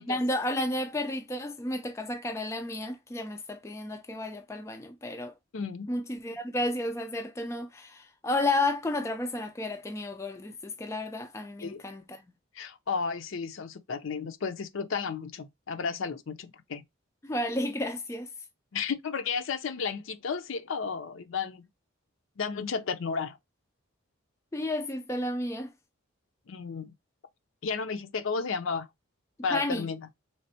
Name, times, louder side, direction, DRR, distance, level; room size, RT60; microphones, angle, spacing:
voice 1, 0.0-5.3 5.9-12.2 17.2-18.3 24.5-25.7 29.5-29.9, left 1 dB, 15° left, 0.3 m, -32 dB
voice 2, 5.5-5.9 11.6-11.8 12.5-16.8 18.7-21.6 22.4-23.4 26.5-26.9 27.6-28.9 29.4-30.0, left 5 dB, 65° left, 0.5 m, -33 dB
3.4 x 3.2 x 2.7 m
head